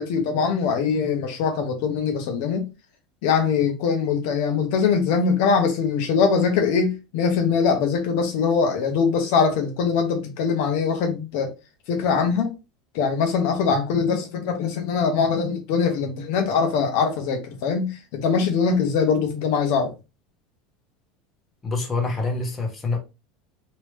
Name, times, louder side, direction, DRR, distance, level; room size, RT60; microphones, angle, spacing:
voice 1, 0.0-2.7 3.2-11.5 11.9-12.5 12.9-19.9, left 5 dB, 70° left, 0.9 m, -22 dB
voice 2, 21.6-23.0, left 3 dB, 20° left, 1.1 m, -26 dB
3.1 x 2.9 x 3.3 m
supercardioid pair, 140°, 0 cm